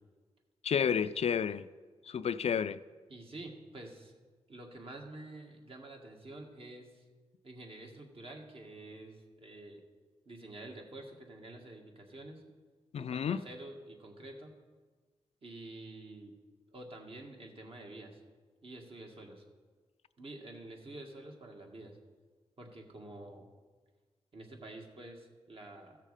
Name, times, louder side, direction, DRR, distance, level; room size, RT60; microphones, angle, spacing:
voice 1, 0.6-1.7 2.0-2.8 12.9-13.4, left 7 dB, 60° left, 0.4 m, -31 dB
voice 2, 3.1-4.1 4.5-7.0 7.4-9.8 10.3-12.4 13.0-14.5 15.4-16.3 16.7-18.2 18.6-19.4 20.2-22.0 22.6-23.5 24.3-26.0, right 2 dB, 50° right, 2.1 m, -48 dB
15.0 x 6.6 x 5.0 m
cardioid pair, 65°, 12 cm